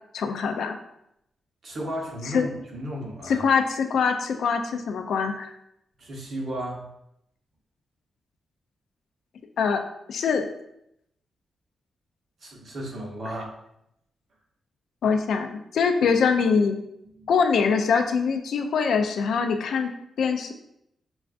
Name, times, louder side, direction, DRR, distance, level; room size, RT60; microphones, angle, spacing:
voice 1, 0.1-0.8 2.3-2.5 3.3-5.5 9.6-9.8 10.1-10.5 15.0-16.8 17.3-19.9 20.2-20.5, left 5 dB, 75° left, 6 dB, 0.4 m, -23 dB
voice 2, 1.6-3.5 6.0-6.8 12.4-13.5 17.2-17.3, right 1 dB, 50° right, -1 dB, 0.9 m, -34 dB
6.0 x 2.3 x 2.4 m, 0.79 s
wide cardioid pair, 160°, 0 cm